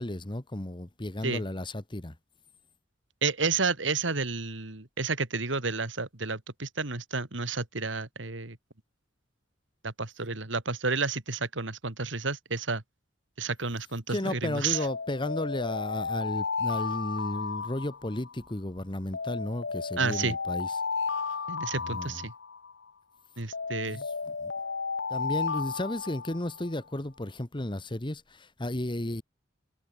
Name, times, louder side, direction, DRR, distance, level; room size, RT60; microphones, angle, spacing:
voice 1, 0.0-2.1 14.1-20.7 21.8-22.2 23.8-24.0 24.4-24.5 25.1-29.2, left 1 dB, 25° left, 1.3 m, -33 dB
voice 2, 3.2-8.6 9.8-12.8 13.4-14.9 20.0-20.3 21.5-22.3 23.4-24.0, right 4 dB, 80° right, 2.6 m, -31 dB
Alarm, 14.7-18.4 19.1-22.8 23.5-26.7, left 5 dB, 70° left, 1.0 m, -33 dB
head